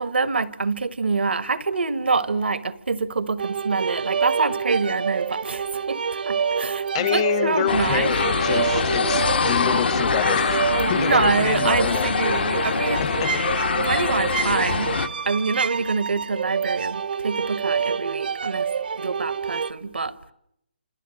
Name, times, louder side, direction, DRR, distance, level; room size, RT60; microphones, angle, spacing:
voice 1, 0.0-8.1 10.8-13.1 13.8-15.0 15.2-18.7 18.9-20.2, right 4 dB, 80° right, 1.4 m, -25 dB
sound 1, 3.4-19.7, right 6 dB, 60° right, 1.0 m, -27 dB
voice 2, 6.9-10.6 10.9-12.1 13.0-13.3, left 10 dB, 30° left, 1.0 m, -27 dB
sound 2, 7.7-15.1, left 5 dB, 70° left, 1.4 m, -24 dB
28.0 x 26.5 x 7.7 m
hypercardioid pair, 155°, 6 cm